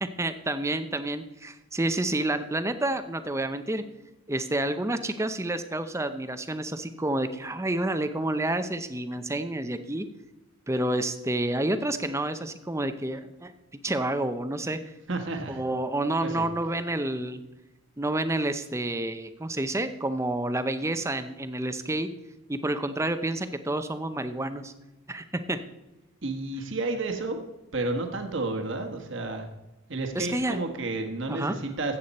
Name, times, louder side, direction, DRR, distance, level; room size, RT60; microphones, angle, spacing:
voice 1, 0.0-3.8 4.3-10.1 10.7-13.5 13.8-14.8 15.5-17.4 18.0-22.1 22.5-24.7 25.1-25.6 30.1-30.6 31.3-31.6, right 1 dB, 15° right, 10 dB, 0.6 m, -29 dB
voice 2, 15.1-15.6 16.2-16.5 26.2-27.4 27.7-29.5 29.9-32.0, right 2 dB, 55° right, 4 dB, 1.4 m, -31 dB
14.5 x 8.5 x 4.2 m, 1.0 s
head